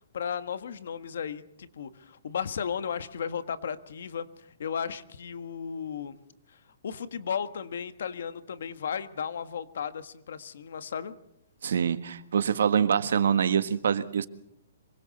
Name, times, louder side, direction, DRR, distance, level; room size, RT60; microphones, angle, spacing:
voice 1, 0.1-6.1 6.8-11.1, left 7 dB, 60° left, 12 dB, 1.6 m, -35 dB
voice 2, 11.6-14.3, right 7 dB, 70° right, 12 dB, 1.4 m, -25 dB
26.0 x 24.0 x 4.2 m, 0.76 s
hypercardioid pair, 175°, 0 cm